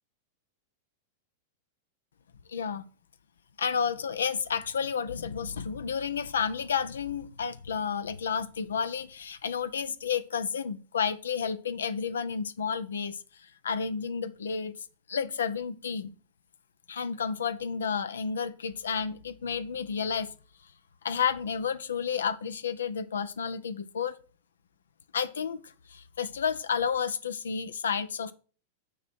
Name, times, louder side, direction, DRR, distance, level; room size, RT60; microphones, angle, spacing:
voice 1, 2.5-2.9 3.6-16.1 16.9-20.3 21.0-24.2 25.1-28.3, left 6 dB, 70° left, 0.5 m, -31 dB
9.0 x 3.1 x 6.1 m
figure-of-eight pair, 95°, 0 cm